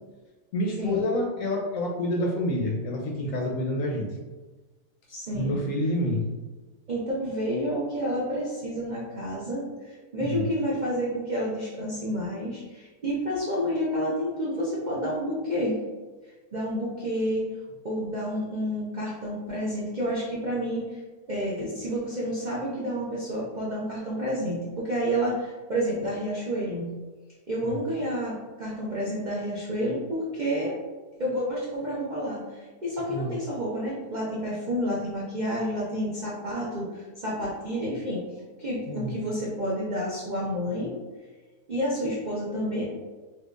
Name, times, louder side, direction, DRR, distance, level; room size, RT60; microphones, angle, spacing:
voice 1, 0.5-4.1 5.3-6.2 10.2-10.4 27.6-27.7 33.1-33.3 38.9-39.1, left 1 dB, 65° left, -1 dB, 0.9 m, -28 dB
voice 2, 5.1-5.6 6.9-15.8 16.5-17.4 17.8-21.0 21.3-26.9 27.5-30.8 31.2-38.3 38.6-40.9 41.7-42.8, equal, 65° right, -7 dB, 0.4 m, -29 dB
4.4 x 2.4 x 2.4 m, 1.3 s
omnidirectional pair, 1.7 m